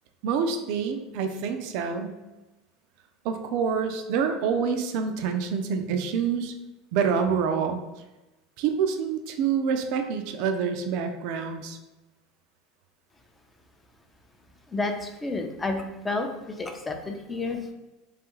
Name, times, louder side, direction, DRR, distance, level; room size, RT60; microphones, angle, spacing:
voice 1, 0.2-2.2 3.2-6.5 6.9-7.8 8.6-11.8, right 6 dB, 65° right, 6 dB, 0.3 m, -27 dB
voice 2, 14.7-17.6, left 2 dB, 20° left, 4 dB, 0.5 m, -30 dB
2.6 x 2.3 x 3.0 m, 1.0 s
hypercardioid pair, 95°, 0 cm